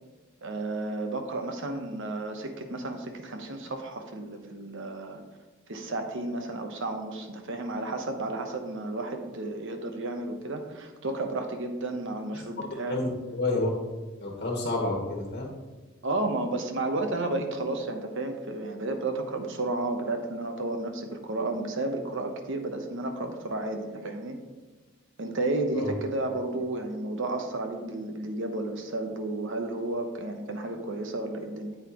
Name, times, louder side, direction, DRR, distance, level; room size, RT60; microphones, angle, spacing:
voice 1, 0.4-5.2 5.7-13.0 16.0-24.4 25.2-31.8, right 2 dB, 65° right, 5 dB, 1.1 m, -32 dB
voice 2, 12.9-13.7 14.2-15.5 25.7-25.9, left 2 dB, 45° left, -1 dB, 1.5 m, -29 dB
8.8 x 8.2 x 3.1 m, 1.3 s
head